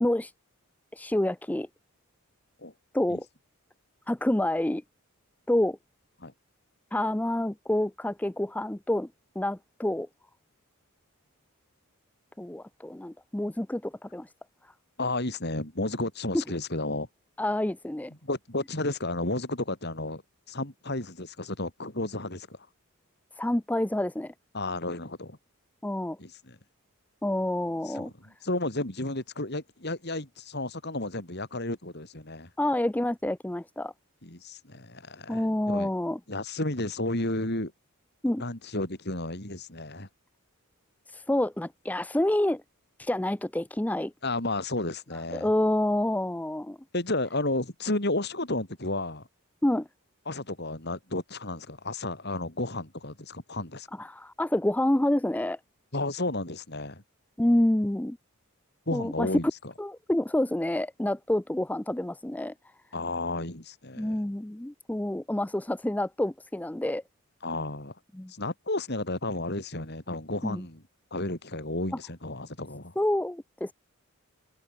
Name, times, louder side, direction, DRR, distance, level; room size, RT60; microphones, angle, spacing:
voice 1, 0.0-0.3 0.9-1.7 2.9-3.3 4.1-4.8 5.5-5.8 6.9-9.1 9.4-10.1 12.4-14.3 14.6-14.7 17.4-18.1 23.4-24.3 25.8-26.2 27.2-28.1 32.6-33.9 35.3-36.2 38.2-38.4 41.1-42.6 43.0-44.1 45.3-46.8 49.6-49.9 54.0-55.6 57.4-58.2 58.9-59.3 59.8-62.5 64.0-67.0 68.1-68.3 70.4-70.6 73.0-73.7, left 1 dB, 5° left, 0.4 m, -28 dB
voice 2, 15.0-17.1 18.1-20.2 20.5-22.7 24.5-25.4 26.2-26.6 27.8-32.5 34.2-35.9 36.3-37.7 38.4-40.1 44.2-45.5 46.9-49.3 50.3-53.9 55.9-57.0 58.9-59.5 62.9-64.2 67.4-68.0 68.3-70.8 71.1-72.9, left 2 dB, 50° left, 4.2 m, -32 dB
head